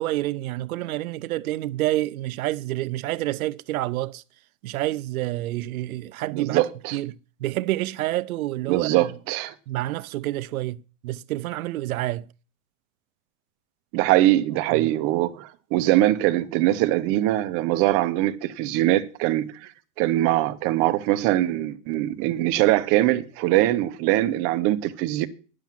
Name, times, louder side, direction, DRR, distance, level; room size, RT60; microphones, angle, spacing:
voice 1, 0.0-4.2 4.6-9.1 9.7-12.3 14.7-14.9, right 16 dB, 65° right, 0.7 m, -28 dB
voice 2, 6.3-7.0 8.7-9.5 13.9-19.7 20.0-25.3, right 15 dB, 30° right, 0.8 m, -22 dB
10.5 x 7.5 x 7.4 m
supercardioid pair, 150°, 45 cm